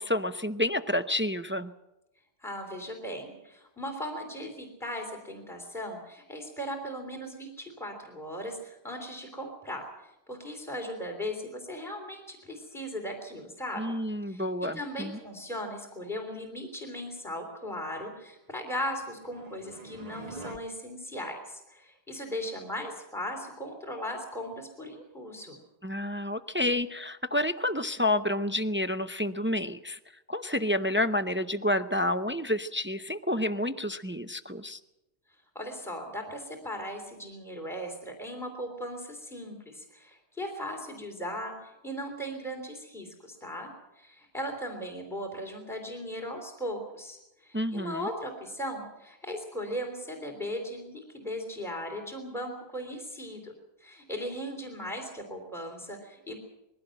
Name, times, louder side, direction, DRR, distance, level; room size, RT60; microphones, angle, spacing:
voice 1, 0.0-1.7 13.8-15.2 25.8-30.0 30.3-34.8 47.5-48.1, left 1 dB, 15° right, 10 dB, 0.5 m, -29 dB
voice 2, 2.4-9.8 10.3-14.0 14.3-14.4 14.7-25.6 35.5-43.7 44.0-53.5 53.8-56.4, equal, ahead, 2 dB, 3.3 m, -38 dB
sound 1, 18.6-20.6, right 3 dB, 40° right, 1.2 m, -45 dB
21.5 x 16.0 x 7.8 m, 0.94 s
omnidirectional pair, 1.1 m